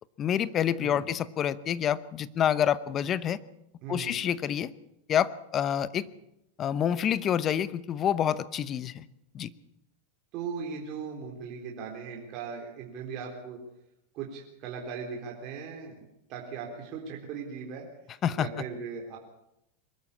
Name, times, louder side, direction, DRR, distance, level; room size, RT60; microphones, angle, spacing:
voice 1, 0.2-3.4 3.9-4.7 5.1-6.1 6.6-9.0 9.3-9.5 18.2-18.5, left 9 dB, 30° left, 17 dB, 0.8 m, -27 dB
voice 2, 0.8-1.1 3.8-4.2 10.3-13.6 14.1-16.0 16.3-17.9 18.4-19.2, right 6 dB, 45° right, -1 dB, 3.9 m, -38 dB
23.0 x 13.5 x 8.5 m, 0.85 s
supercardioid pair, 130°, 0 cm